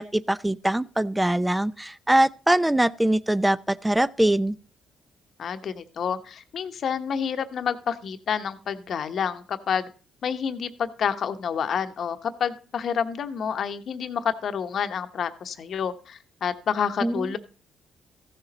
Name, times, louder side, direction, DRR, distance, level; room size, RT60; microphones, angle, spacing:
voice 1, 0.0-4.6 17.0-17.3, right 1 dB, 10° right, 0.4 m, -23 dB
voice 2, 5.4-9.9 10.2-17.4, left 7 dB, 60° left, 1.0 m, -29 dB
14.5 x 6.8 x 4.1 m
cardioid pair, 90°, 0 cm